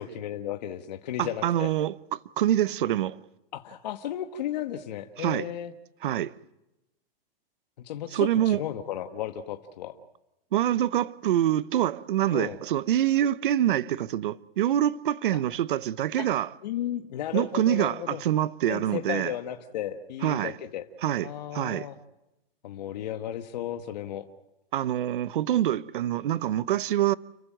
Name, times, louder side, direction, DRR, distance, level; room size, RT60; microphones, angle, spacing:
voice 1, 0.0-1.7 3.5-5.7 7.8-10.0 12.3-12.6 16.2-16.3 16.6-18.2 18.7-20.9 21.2-22.0 22.6-24.3, left 11 dB, 45° left, 1.3 m, -34 dB
voice 2, 1.2-3.2 5.2-5.5 6.0-6.3 8.1-8.6 10.5-16.5 17.3-19.3 20.2-20.6 21.0-21.9 24.7-27.1, right 12 dB, 60° right, 0.8 m, -26 dB
30.0 x 15.0 x 9.0 m
hypercardioid pair, 170°, 29 cm